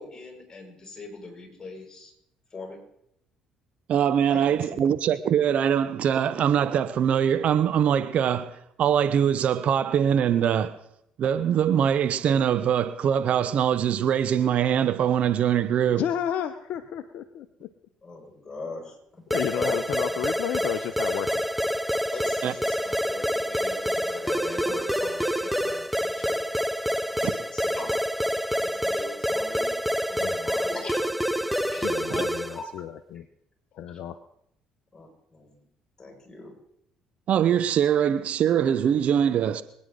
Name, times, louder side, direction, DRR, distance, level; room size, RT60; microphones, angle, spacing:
voice 1, 0.0-2.1 2.5-2.8 4.3-4.9 18.0-19.0 19.5-20.2 22.1-26.4 27.3-28.0 28.6-29.8 30.1-31.4 31.7-31.9 32.5-32.6 34.9-35.6 36.0-36.5, left 3 dB, 25° left, 5.9 m, -40 dB
voice 2, 3.9-10.8 11.2-16.0 22.4-22.5 27.2-27.3 32.1-32.2 37.3-39.6, right 9 dB, 55° right, 0.7 m, -23 dB
voice 3, 16.0-17.7 19.3-21.4 30.2-30.3 31.8-33.2 33.7-34.2, left 10 dB, 65° left, 0.7 m, -31 dB
sound 1, 19.3-32.6, equal, ahead, 0.7 m, -27 dB
24.5 x 9.6 x 3.8 m
hypercardioid pair, 55°, 3 cm